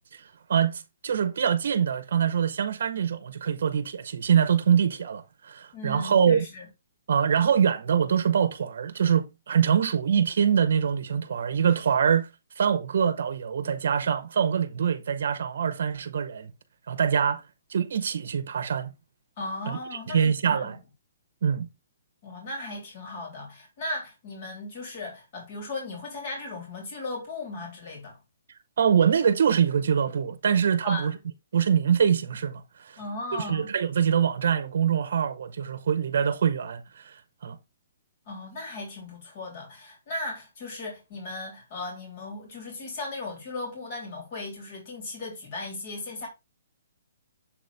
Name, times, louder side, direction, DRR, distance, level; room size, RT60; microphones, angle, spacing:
voice 1, 0.1-6.5 7.1-12.3 12.6-16.5 16.9-17.4 17.7-18.9 19.7-19.8 20.1-20.8 21.4-21.7 28.8-31.1 31.5-33.0 33.3-37.6, right 7 dB, 65° right, 0.7 m, -24 dB
voice 2, 5.7-6.6 19.4-20.7 22.2-28.2 30.8-31.1 33.0-33.7 38.3-46.3, left 2 dB, 45° left, 3.4 m, -37 dB
7.3 x 4.0 x 3.3 m
hypercardioid pair, 155°, 0 cm